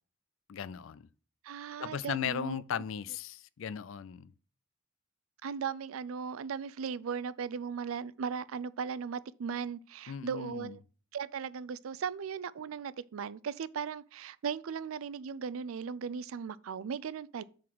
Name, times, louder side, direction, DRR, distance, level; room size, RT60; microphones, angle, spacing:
voice 1, 0.5-1.1 1.8-4.3 10.1-10.8, left 8 dB, 70° left, 0.4 m, -37 dB
voice 2, 1.4-2.6 5.4-10.8 11.1-17.4, right 6 dB, 85° right, 0.4 m, -37 dB
7.5 x 4.0 x 6.0 m
head